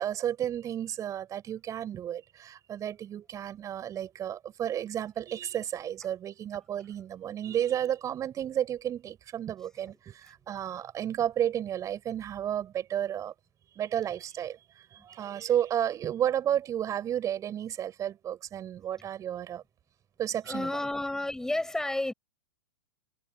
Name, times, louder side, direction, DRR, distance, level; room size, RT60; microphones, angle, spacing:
voice 1, 0.0-13.3 13.7-19.6 20.2-20.7, right 10 dB, 25° right, 6.0 m, -32 dB
voice 2, 20.4-22.1, left 1 dB, 5° left, 7.7 m, -31 dB
figure-of-eight pair, 105°, 13 cm